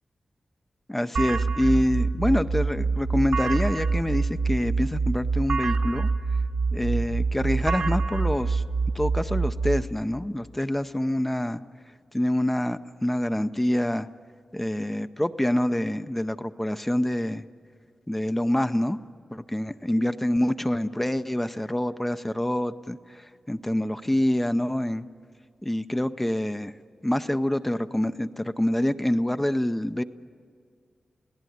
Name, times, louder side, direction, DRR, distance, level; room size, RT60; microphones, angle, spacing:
voice 1, 0.9-6.1 6.7-8.6 8.9-11.6 12.1-14.1 14.5-17.4 18.1-19.0 19.3-23.0 23.5-25.0 25.6-26.7 27.0-30.0, left 1 dB, 10° left, 10 dB, 0.6 m, -26 dB
sound 1, 1.2-9.8, right 4 dB, 70° right, 1.5 m, -26 dB
28.5 x 18.0 x 9.3 m, 2.1 s
wide cardioid pair, 130°, 2 cm